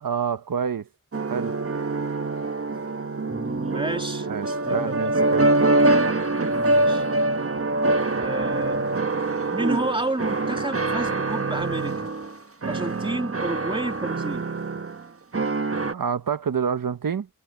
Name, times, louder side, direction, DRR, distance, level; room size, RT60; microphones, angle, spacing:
voice 1, 0.0-0.9 1.3-1.6 4.3-5.5 15.9-17.3, right 7 dB, 80° right, 1.2 m, -27 dB
sound 1, 1.1-12.3 12.6-15.0 15.3-15.9, right 2 dB, 40° right, 1.3 m, -24 dB
voice 2, 3.2-5.5 6.5-7.0 8.2-8.9 9.5-12.1 12.6-14.4, right 2 dB, 15° right, 3.0 m, -31 dB
cardioid pair, 55°, 34 cm